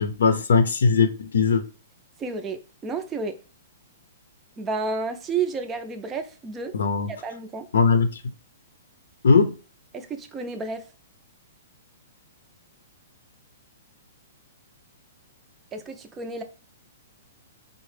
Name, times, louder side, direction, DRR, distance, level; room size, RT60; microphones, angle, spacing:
voice 1, 0.0-1.6 6.7-7.1 7.7-8.2 9.2-9.5, left 5 dB, 90° left, 0.6 m, -19 dB
voice 2, 2.2-3.4 4.6-6.7 7.1-7.7 9.9-10.8 15.7-16.4, right 4 dB, 15° right, 0.4 m, -31 dB
3.9 x 2.0 x 3.2 m
hypercardioid pair, 165°, 0 cm